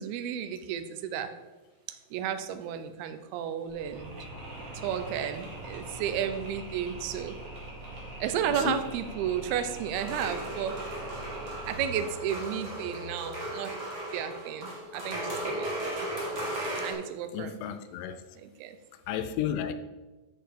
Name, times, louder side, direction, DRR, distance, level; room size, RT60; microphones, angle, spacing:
voice 1, 0.0-1.3 1.9-4.1 4.7-7.4 8.2-10.8 11.7-13.8 14.1-16.1 16.8-17.7 18.4-18.8, right 9 dB, 80° right, 9 dB, 2.2 m, -33 dB
Mechanisms, 3.7-13.4, right 1 dB, 35° right, 2.9 m, -43 dB
voice 2, 8.5-8.8 17.3-18.2 19.1-19.7, left 10 dB, 80° left, 10 dB, 2.5 m, -32 dB
sound 1, 9.9-16.9, right 1 dB, 60° right, 0.7 m, -36 dB
10.5 x 6.6 x 5.1 m, 1.2 s
omnidirectional pair, 5.3 m